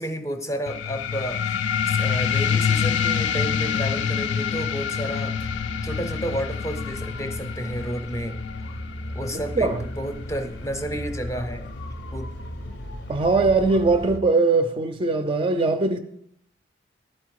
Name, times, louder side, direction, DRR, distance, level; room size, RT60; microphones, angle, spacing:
voice 1, 0.0-8.4 9.1-11.7 12.1-12.3, right 1 dB, 15° left, 0.6 m, -31 dB
sound 1, 0.7-11.7, left 7 dB, 85° left, 0.4 m, -27 dB
sound 2, 5.3-14.2, left 1 dB, 70° left, 0.7 m, -36 dB
voice 2, 9.3-9.8 13.1-16.0, right 3 dB, 30° right, 0.4 m, -21 dB
11.5 x 4.4 x 4.6 m
head